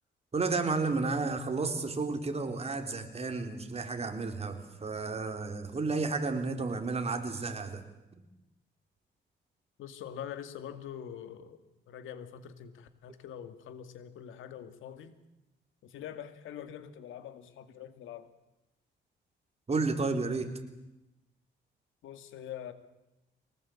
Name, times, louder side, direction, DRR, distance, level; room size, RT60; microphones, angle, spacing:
voice 1, 0.3-7.8 19.7-20.5, right 3 dB, 30° right, 5 dB, 3.9 m, -32 dB
voice 2, 9.8-15.1 15.8-18.3 22.0-22.7, left 9 dB, 85° left, 10 dB, 2.3 m, -44 dB
23.5 x 19.5 x 8.7 m, 0.96 s
cardioid pair, 90°, 20 cm